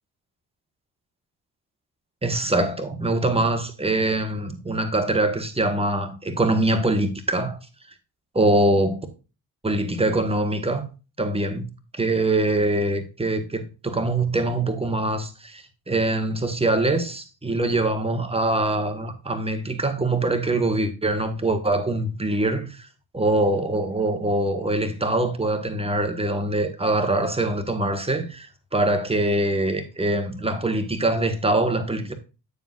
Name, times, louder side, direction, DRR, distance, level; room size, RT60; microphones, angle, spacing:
voice 1, 2.2-7.6 8.3-9.0 9.6-10.8 11.2-11.7 12.0-22.9 23.1-28.5 28.7-32.1, right 2 dB, 10° right, 1.3 m, -23 dB
9.3 x 7.1 x 2.5 m
figure-of-eight pair, 40°, 49 cm